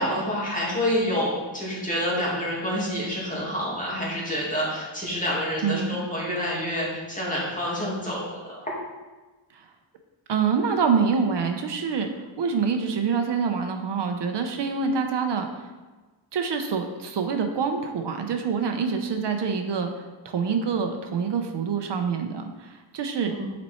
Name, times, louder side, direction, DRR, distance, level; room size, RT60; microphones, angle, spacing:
voice 1, 0.0-8.6 23.2-23.5, equal, 15° left, -6 dB, 2.3 m, -28 dB
voice 2, 5.6-6.0 9.5-9.6 10.3-12.1 12.4-15.7 16.3-23.3, right 5 dB, 65° right, 5 dB, 0.8 m, -26 dB
9.2 x 4.3 x 4.4 m, 1.2 s
wide cardioid pair, 150°, 46 cm